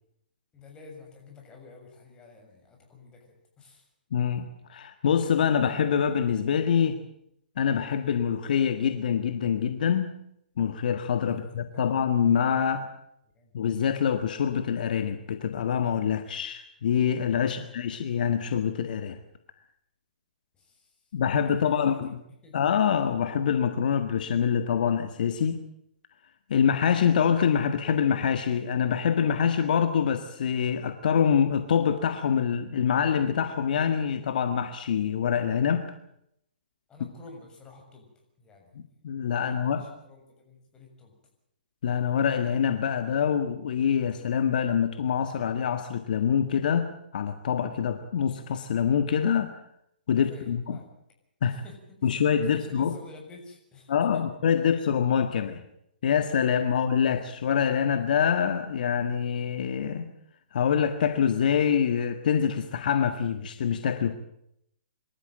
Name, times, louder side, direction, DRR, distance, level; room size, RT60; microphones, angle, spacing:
voice 1, 0.5-3.9 11.2-12.0 13.3-13.5 17.4-17.8 20.6-20.9 21.3-22.1 22.4-22.5 36.9-38.1 38.4-38.8 39.3-41.1 50.3-50.9 51.4-52.1 52.5-54.2, left 3 dB, 15° left, 1 dB, 7.0 m, -50 dB
voice 2, 4.1-7.0 7.6-10.1 10.6-12.9 13.5-19.2 21.1-22.1 22.5-25.6 26.5-35.9 39.0-39.9 41.8-49.5 50.1-50.8 51.4-51.6 52.0-52.9 53.9-55.6 56.0-60.1 60.5-64.2, left 7 dB, 60° left, 8 dB, 1.8 m, -25 dB
26.0 x 13.5 x 9.0 m, 0.76 s
hypercardioid pair, 130°, 5 cm